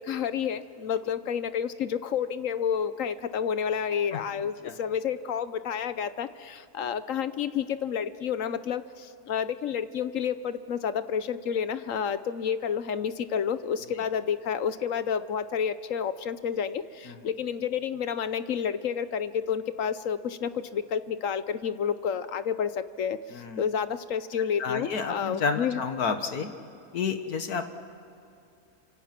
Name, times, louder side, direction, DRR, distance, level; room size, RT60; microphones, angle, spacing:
voice 1, 0.0-25.8, left 7 dB, 65° left, 13 dB, 1.1 m, -30 dB
voice 2, 23.3-23.6 24.6-26.5 26.9-27.6, left 5 dB, 85° left, 8 dB, 1.9 m, -30 dB
28.5 x 26.0 x 6.0 m, 2.7 s
omnidirectional pair, 1.6 m